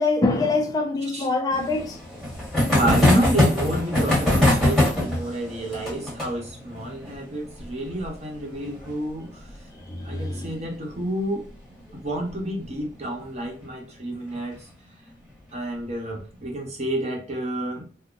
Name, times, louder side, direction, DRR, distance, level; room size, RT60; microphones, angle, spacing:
voice 1, 0.0-2.0 9.8-10.5, left 3 dB, 20° left, 0.4 m, -24 dB
sound 1, 1.5-10.7 11.0-11.1 11.3-11.4 11.7-11.8 13.2-13.5 14.1-14.6, left 1 dB, ahead, 1.3 m, -24 dB
voice 2, 2.7-9.7 10.0-11.5 11.9-14.7 15.5-17.9, right 1 dB, 40° right, 0.9 m, -29 dB
3.7 x 2.1 x 2.4 m
head